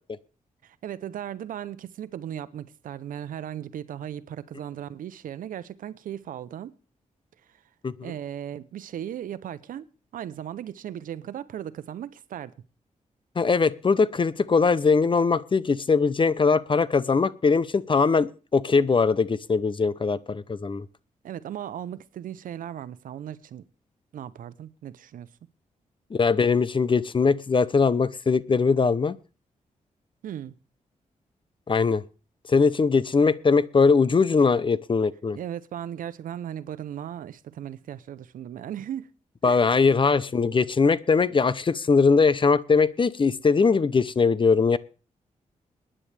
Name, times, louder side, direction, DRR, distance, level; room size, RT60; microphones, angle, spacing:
voice 1, 0.6-6.7 8.0-9.9 10.1-12.5 21.2-23.6 24.1-25.3 30.2-30.6 35.3-39.1 39.4-39.7, right 10 dB, 90° right, 0.8 m, -37 dB
voice 2, 13.4-20.8 26.1-29.2 31.7-32.0 32.5-35.4 39.4-44.8, left 4 dB, 40° left, 0.8 m, -21 dB
22.0 x 10.0 x 3.4 m
cardioid pair, 75°, 14 cm